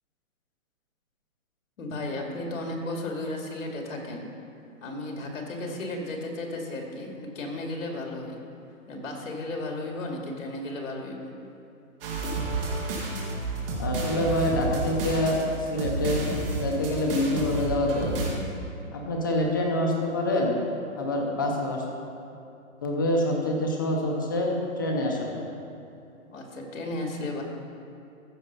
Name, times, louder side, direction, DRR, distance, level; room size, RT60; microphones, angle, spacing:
voice 1, 1.8-4.3 4.8-8.4 8.9-11.3 26.3-27.4, left 2 dB, 70° left, 1 dB, 2.2 m, -34 dB
sound 1, 12.0-18.3, right 2 dB, 40° right, 2.0 m, -31 dB
voice 2, 13.8-18.2 18.9-20.6 21.0-21.8 22.8-25.4, left 1 dB, 15° left, 0 dB, 0.5 m, -26 dB
14.5 x 5.3 x 5.5 m, 2.6 s
hypercardioid pair, 165°, 41 cm